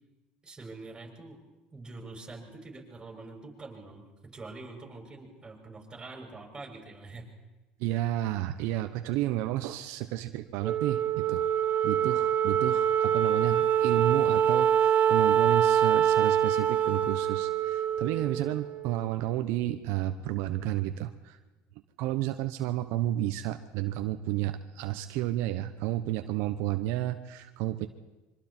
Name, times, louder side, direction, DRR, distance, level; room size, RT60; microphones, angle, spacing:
voice 1, 0.4-1.4 1.7-4.0 4.3-7.3 18.1-18.3, right 3 dB, 15° right, 0 dB, 6.5 m, -45 dB
voice 2, 7.8-11.4 11.8-21.4 22.0-27.9, right 14 dB, 75° right, 8 dB, 0.9 m, -31 dB
Wind instrument woodwind instrument, 10.6-19.2, right 9 dB, 40° right, 1.4 m, -25 dB
25.5 x 24.0 x 4.4 m, 1.1 s
supercardioid pair, 105°, 4 cm